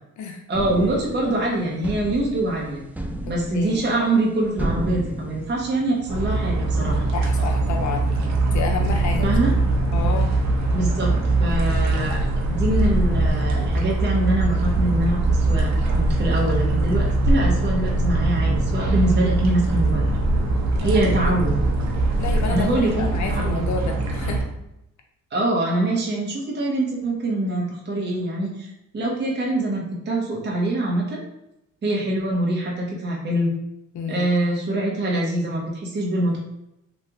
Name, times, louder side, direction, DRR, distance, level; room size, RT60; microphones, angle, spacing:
sound 1, 0.5-6.1, right 1 dB, 5° right, 0.3 m, -33 dB
voice 1, 0.5-2.8 3.3-7.1 9.2-9.5 10.7-20.1 20.8-21.6 22.5-22.9 23.3-23.6 25.3-28.7 28.9-31.2 31.8-33.5 34.1-36.4, right 1 dB, 35° right, -3 dB, 0.9 m, -24 dB
voice 2, 3.2-3.9 7.1-8.1 8.5-9.3 9.9-10.3 13.2-13.3 20.8-21.2 22.2-24.4 33.9-34.3, left 5 dB, 70° left, 3 dB, 0.7 m, -30 dB
sound 2, 6.1-24.4, right 2 dB, 65° right, 0.9 m, -22 dB
3.0 x 2.4 x 3.5 m, 0.85 s
cardioid pair, 90°, 30 cm